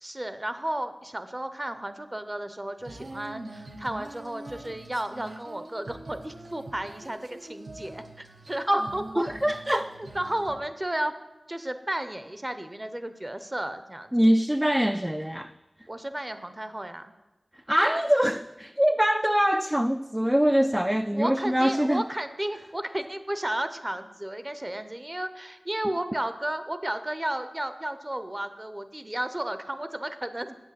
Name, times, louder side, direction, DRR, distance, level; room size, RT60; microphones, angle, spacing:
voice 1, 0.0-9.2 9.7-9.9 10.1-11.1 11.5-14.1 15.9-17.1 21.1-30.6, right 1 dB, 25° right, 0.7 m, -33 dB
Female singing, 2.8-10.6, right 2 dB, 70° right, 0.9 m, -44 dB
voice 2, 8.7-9.9 14.1-15.5 17.7-22.0, equal, 10° right, 0.3 m, -24 dB
8.0 x 6.2 x 7.5 m
wide cardioid pair, 60°, 0 cm